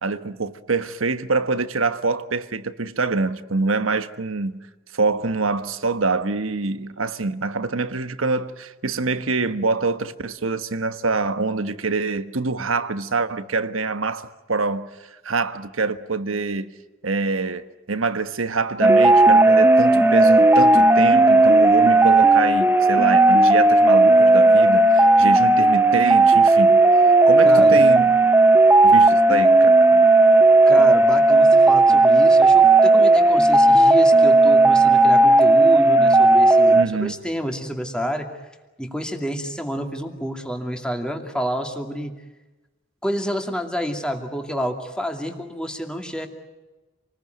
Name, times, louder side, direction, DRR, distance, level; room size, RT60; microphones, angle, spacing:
voice 1, 0.0-4.7 4.9-14.9 15.2-16.7 17.0-26.8 27.3-28.1 28.8-30.0 36.7-37.2, right 3 dB, 90° right, 1.3 m, -25 dB
sound 1, 18.8-36.8, right 2 dB, 10° right, 0.8 m, -14 dB
voice 2, 30.7-38.3 38.8-42.1 43.0-46.3, equal, 5° left, 2.4 m, -29 dB
28.0 x 20.0 x 9.3 m
head